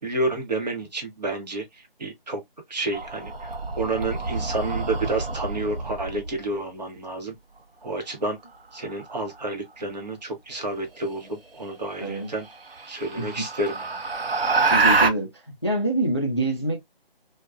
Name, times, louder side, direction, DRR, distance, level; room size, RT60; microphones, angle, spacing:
voice 1, 0.0-2.4 2.7-7.3 7.8-8.4 8.7-12.5 12.9-14.0, right 2 dB, 45° right, 0.9 m, -30 dB
sound 1, 2.9-6.4 8.8-9.2 11.3-11.4 11.9-12.0 12.5-15.1, right 3 dB, 80° right, 0.8 m, -26 dB
voice 2, 12.0-12.3 13.2-13.4 14.7-15.3 15.6-16.8, right 1 dB, 30° left, 0.4 m, -25 dB
2.5 x 2.2 x 2.3 m
figure-of-eight pair, 160°, 30 cm